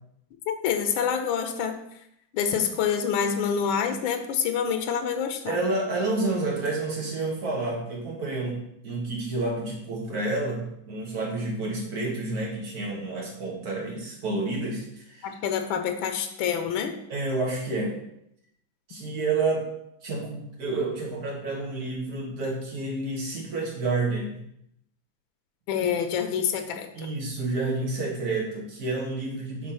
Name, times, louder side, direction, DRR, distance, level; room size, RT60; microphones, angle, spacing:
voice 1, 0.5-1.7 2.3-5.6 15.2-16.9 25.7-27.1, left 7 dB, 90° left, 6 dB, 1.4 m, -27 dB
voice 2, 5.5-15.3 17.1-18.0 18.9-19.7 20.0-24.4 26.9-29.7, right 2 dB, 50° right, -2 dB, 1.8 m, -29 dB
5.6 x 3.4 x 5.5 m, 0.77 s
omnidirectional pair, 2.1 m